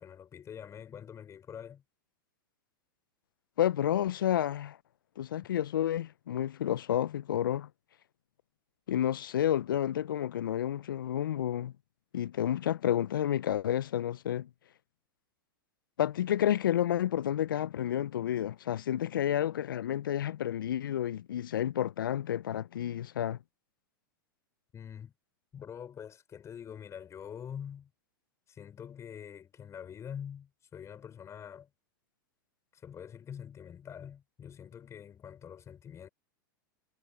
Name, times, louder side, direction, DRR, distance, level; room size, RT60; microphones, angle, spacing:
voice 1, 0.0-1.8 24.7-25.1 25.5-27.9 28.5-31.7 32.7-36.1, left 8 dB, 25° left, 5.9 m, -45 dB
voice 2, 3.6-4.8 5.2-7.7 8.9-11.7 12.1-14.5 16.0-23.4, left 11 dB, 80° left, 0.5 m, -30 dB
hypercardioid pair, 105°, 11 cm